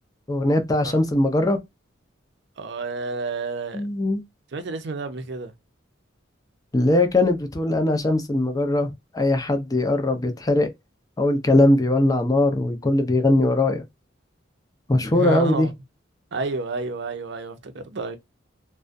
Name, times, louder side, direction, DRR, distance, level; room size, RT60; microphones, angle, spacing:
voice 1, 0.3-1.6 3.7-4.2 6.7-10.7 11.2-13.8 14.9-15.7, left 2 dB, 20° left, 0.5 m, -20 dB
voice 2, 2.6-3.9 4.5-5.5 15.1-15.7 16.3-18.2, right 3 dB, 65° right, 0.5 m, -30 dB
2.4 x 2.1 x 2.5 m
head